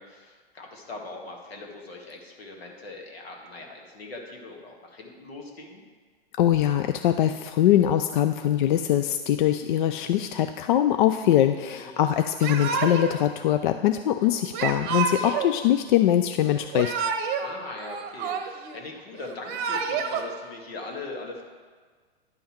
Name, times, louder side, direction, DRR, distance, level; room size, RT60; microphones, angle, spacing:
voice 1, 0.0-5.8 11.7-12.1 17.4-21.4, left 2 dB, 75° left, 0 dB, 1.8 m, -40 dB
voice 2, 6.4-16.9, left 11 dB, 50° left, 8 dB, 0.4 m, -22 dB
Yell / Crying sobbing, 12.4-13.2 14.5-15.5 16.6-17.5 17.8-18.8 19.3-20.2, right 6 dB, 35° right, 0.9 m, -28 dB
10.5 x 5.5 x 4.4 m, 1.5 s
figure-of-eight pair, 105°, 31 cm